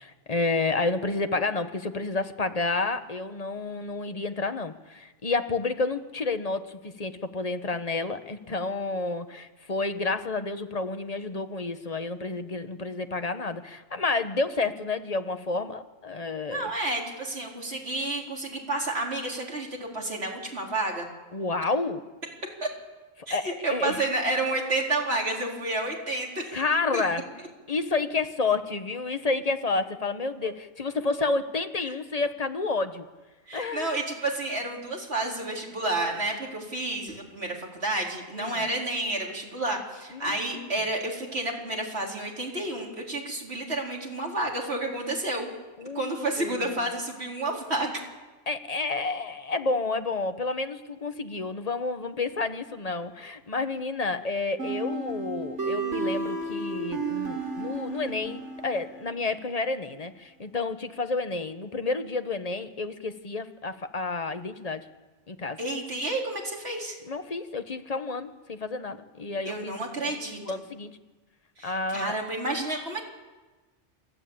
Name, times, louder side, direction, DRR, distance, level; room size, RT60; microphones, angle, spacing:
voice 1, 0.0-16.7 21.3-22.0 23.2-24.0 26.5-27.3 27.7-33.0 33.5-34.0 38.3-38.6 40.1-40.7 45.8-46.7 48.5-64.8 65.3-65.6 67.1-69.7 70.0-71.0 71.6-72.1, left 3 dB, 35° left, 9 dB, 1.2 m, -30 dB
voice 2, 16.5-21.1 22.6-22.7 23.3-26.5 26.9-27.0 30.4-30.5 33.5-45.5 45.8-48.0 65.6-67.0 69.4-70.6 71.6-73.0, right 2 dB, 60° right, -1 dB, 4.3 m, -30 dB
sound 1, 54.6-59.3, right 3 dB, 85° right, 4.0 m, -32 dB
27.5 x 14.0 x 8.7 m, 1.2 s
omnidirectional pair, 1.2 m